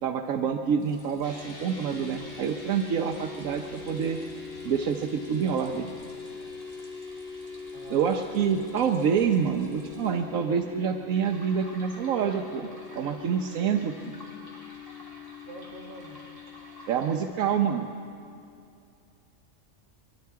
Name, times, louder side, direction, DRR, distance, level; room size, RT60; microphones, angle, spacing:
voice 1, 0.0-4.2 4.6-5.9 7.9-14.1 16.9-17.9, right 7 dB, 85° right, 3 dB, 1.2 m, -27 dB
sound 1, 0.8-10.1 11.1-17.2, equal, 15° left, 3.2 m, -52 dB
sound 2, 1.2-18.6, left 5 dB, 70° left, 2.9 m, -42 dB
voice 2, 7.7-8.4 15.4-16.2, right 2 dB, 40° right, -5 dB, 2.1 m, -45 dB
25.0 x 22.0 x 4.7 m, 2.6 s
omnidirectional pair, 1.4 m